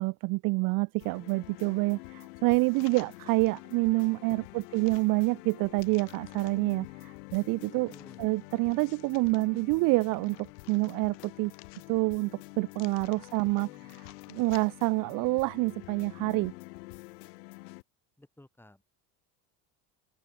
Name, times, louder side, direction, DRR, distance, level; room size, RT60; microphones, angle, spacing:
voice 1, 0.0-7.9 8.2-11.5 11.9-16.5, right 25 dB, 50° right, 0.4 m, -28 dB
sound 1, 1.0-17.8, left 23 dB, 90° left, 4.2 m, -48 dB
sound 2, 2.6-3.7 4.2-6.7 7.3-9.4 9.9-12.2 12.7-15.0 15.4-15.5, left 26 dB, 65° left, 6.6 m, -56 dB
voice 2, 7.9-8.3 13.4-14.0 18.2-18.8, left 1 dB, 5° left, 6.1 m, -57 dB
supercardioid pair, 130°, 46 cm